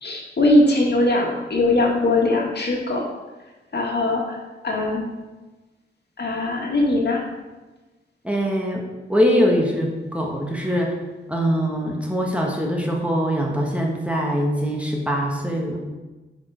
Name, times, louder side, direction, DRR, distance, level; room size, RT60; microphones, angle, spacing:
voice 1, 0.0-3.1 3.7-4.4 4.6-5.1 6.2-7.2 10.6-10.8, left 2 dB, 55° left, -2 dB, 2.0 m, -20 dB
voice 2, 8.2-11.0 11.3-15.8, equal, 5° right, -1 dB, 1.2 m, -22 dB
10.5 x 5.1 x 5.0 m, 1.2 s
wide cardioid pair, 135°, 20 cm